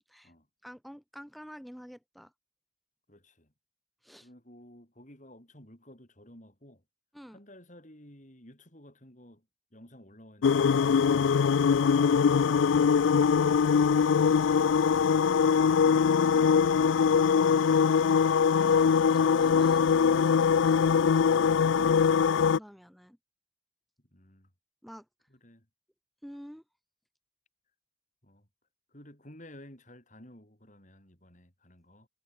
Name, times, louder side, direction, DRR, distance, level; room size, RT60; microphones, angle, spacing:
voice 1, 0.0-0.3 0.6-2.3 4.0-4.3 7.1-7.4 18.6-23.2 24.8-25.0 26.2-26.6, equal, ahead, 2.9 m, -47 dB
voice 2, 3.1-3.5 4.2-6.8 7.3-9.5 9.7-12.2 24.1-24.5 25.3-25.7 28.2-28.5 28.9-32.1, left 1 dB, 40° left, 6.6 m, -54 dB
sound 1, 10.4-22.6, left 6 dB, 90° left, 0.4 m, -22 dB
head